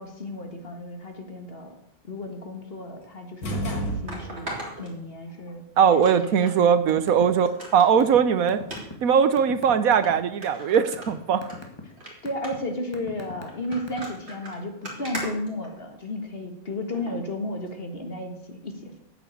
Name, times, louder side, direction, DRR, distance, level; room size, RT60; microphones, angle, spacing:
voice 1, 0.0-1.7 2.0-4.5 4.8-5.6 5.9-6.1 6.4-6.6 7.2-7.4 12.2-19.0, left 1 dB, 40° left, 4 dB, 1.9 m, -34 dB
sound 1, 3.0-3.1 4.1-5.5 6.0-6.6 7.0-7.1 7.4-7.9 8.6-8.8 9.6-9.7 10.0-10.1 10.4-11.6 11.9-12.1 12.4-12.7 13.5-16.2 16.9-17.2 17.7-17.8, right 1 dB, 45° right, 3.5 m, -38 dB
sound 2, 3.4-4.7, right 1 dB, 80° left, 2.5 m, -30 dB
voice 2, 5.8-8.6 9.0-11.5, right 7 dB, 75° right, 12 dB, 1.2 m, -20 dB
sound 3, 6.7-7.3 7.5-10.1 10.6-11.1 11.4-11.8 12.3-12.5 12.9-14.2, left 2 dB, 20° left, 1.8 m, -39 dB
9.4 x 8.2 x 8.5 m, 0.78 s
omnidirectional pair, 1.5 m